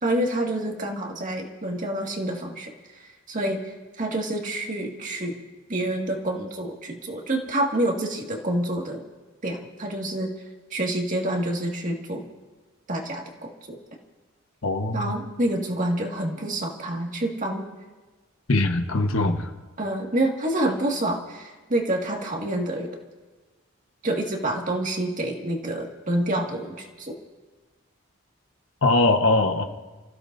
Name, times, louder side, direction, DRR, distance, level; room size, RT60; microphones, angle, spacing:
voice 1, 0.0-2.7 3.3-5.4 5.7-9.0 9.4-10.3 10.7-12.2 12.9-13.8 14.9-17.7 19.8-22.9 24.0-27.2, right 1 dB, 40° right, 0 dB, 2.0 m, -27 dB
voice 2, 14.6-15.1 18.5-19.5 28.8-29.6, left 2 dB, 70° left, 5 dB, 1.2 m, -21 dB
29.5 x 15.5 x 2.7 m, 1.3 s
head